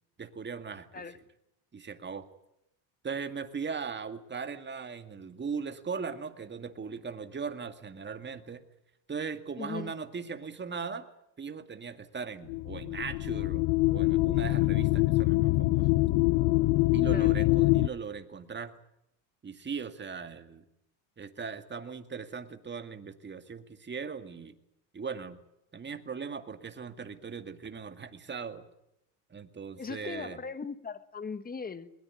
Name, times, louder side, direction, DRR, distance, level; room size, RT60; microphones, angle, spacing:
voice 1, 0.2-1.0 1.7-2.3 3.0-8.6 9.1-11.1 11.4-15.9 16.9-18.7 19.4-20.6 21.2-24.5 24.9-25.4 25.7-28.6 29.3-30.4, right 5 dB, 20° right, 2.2 m, -39 dB
voice 2, 9.6-9.9 17.1-17.4 29.8-31.9, left 5 dB, 20° left, 1.3 m, -39 dB
sound 1, 12.5-17.9, left 20 dB, 60° left, 0.9 m, -25 dB
21.5 x 21.5 x 9.8 m
supercardioid pair, 110°, 49 cm